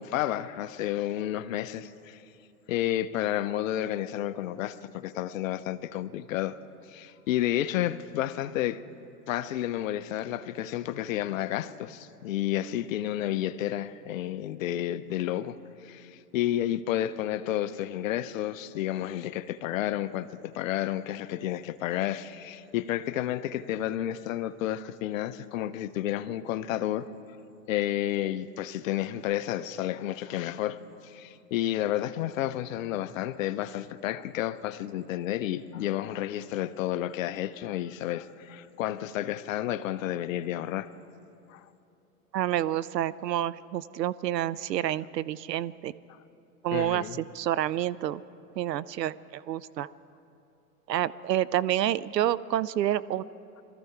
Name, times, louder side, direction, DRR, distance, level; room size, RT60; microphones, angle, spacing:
voice 1, 0.0-2.2 2.7-6.6 6.9-8.8 9.3-15.6 15.8-27.1 27.7-40.9 41.5-41.6 46.7-47.2, left 12 dB, 55° left, 14 dB, 0.7 m, -31 dB
voice 2, 42.3-45.9 46.6-48.2 48.6-49.9 50.9-53.2, right 12 dB, 85° right, 18 dB, 0.6 m, -28 dB
22.0 x 14.0 x 4.7 m, 2.8 s
hypercardioid pair, 110°, 48 cm